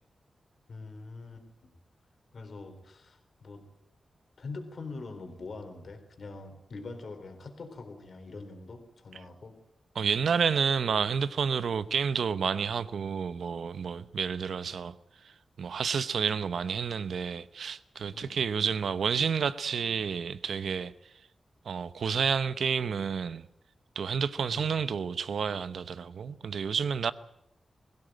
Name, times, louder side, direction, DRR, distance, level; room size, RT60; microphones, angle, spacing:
voice 1, 0.7-1.7 2.3-3.6 4.4-9.6 18.1-18.4 24.5-24.8, left 3 dB, 55° left, 3.9 m, -44 dB
voice 2, 9.9-15.0 15.2-20.9 21.6-23.5 24.0-27.1, right 6 dB, 75° right, 0.9 m, -30 dB
21.5 x 16.5 x 9.1 m
wide cardioid pair, 145°, 0 cm